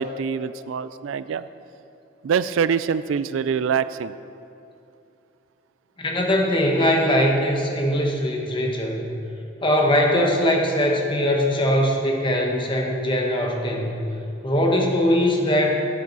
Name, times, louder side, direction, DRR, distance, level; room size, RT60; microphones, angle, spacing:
voice 1, 0.0-1.4 2.2-4.1, right 6 dB, 80° right, 14 dB, 0.3 m, -24 dB
voice 2, 6.0-9.1 9.6-14.0 14.4-15.8, equal, 25° left, 0 dB, 1.2 m, -21 dB
13.5 x 8.8 x 4.0 m, 2.7 s
head